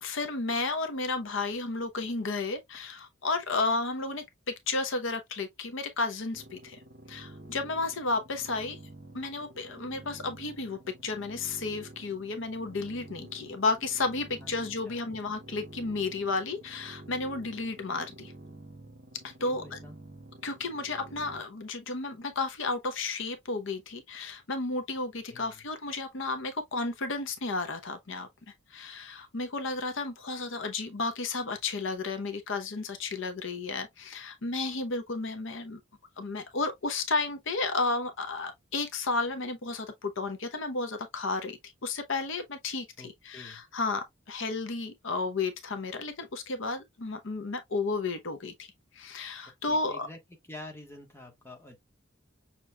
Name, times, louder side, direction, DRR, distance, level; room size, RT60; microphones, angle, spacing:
voice 1, 0.0-4.2 4.7-6.8 7.1-8.8 9.1-18.3 19.2-19.8 20.4-28.3 28.7-35.8 36.2-48.7 48.9-50.1, left 3 dB, 65° left, 0.8 m, -32 dB
sound 1, 6.3-21.4, right 1 dB, 40° right, 1.0 m, -49 dB
voice 2, 19.4-19.9 25.3-25.6 43.0-43.6 49.7-50.2 50.5-51.8, left 2 dB, 10° left, 1.2 m, -47 dB
6.3 x 3.0 x 2.2 m
head